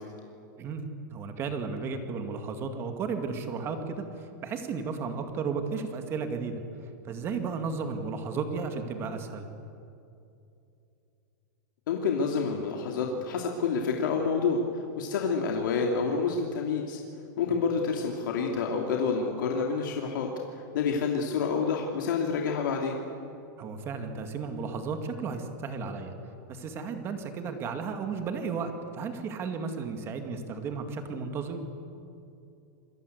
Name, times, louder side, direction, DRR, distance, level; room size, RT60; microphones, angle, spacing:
voice 1, 0.6-6.6 7.0-9.5 23.6-26.1 26.5-31.6, right 5 dB, 25° right, 6 dB, 2.2 m, -34 dB
voice 2, 11.9-17.0 17.4-23.0, left 5 dB, 75° left, 1 dB, 3.1 m, -28 dB
28.0 x 22.5 x 8.1 m, 2.7 s
supercardioid pair, 165°, 11 cm